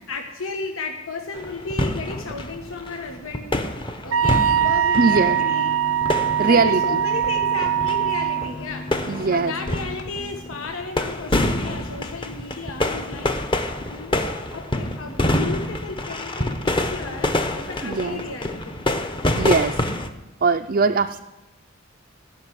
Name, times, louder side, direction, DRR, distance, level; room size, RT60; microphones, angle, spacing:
voice 1, 0.1-3.5 4.0-5.8 6.3-13.4 13.9-18.8, left 3 dB, 90° left, 3 dB, 1.3 m, -34 dB
sound 1, 1.3-20.1, left 1 dB, 25° left, 0.9 m, -27 dB
Wind instrument woodwind instrument, 4.1-8.5, right 9 dB, 90° right, 0.6 m, -22 dB
sound 2, 4.9-10.8, left 2 dB, 60° left, 2.1 m, -37 dB
voice 2, 4.9-5.4 6.4-6.8 9.1-9.5 17.8-18.2 19.4-19.8 20.4-21.2, right 4 dB, 45° right, 5 dB, 0.4 m, -20 dB
17.5 x 6.1 x 9.8 m, 1.0 s
head